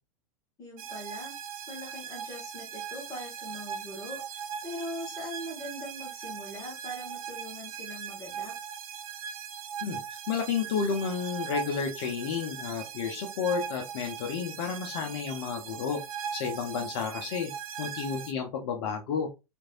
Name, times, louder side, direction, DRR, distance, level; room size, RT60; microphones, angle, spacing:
voice 1, 0.6-1.3 1.7-8.5, equal, 20° left, -2 dB, 1.2 m, -41 dB
sound 1, 0.8-18.3, right 8 dB, 65° right, 0.4 m, -39 dB
voice 2, 10.3-16.0 16.3-17.5 17.8-19.3, left 6 dB, 45° left, 2 dB, 0.6 m, -31 dB
3.1 x 2.5 x 2.3 m, 0.25 s
figure-of-eight pair, 95°, 19 cm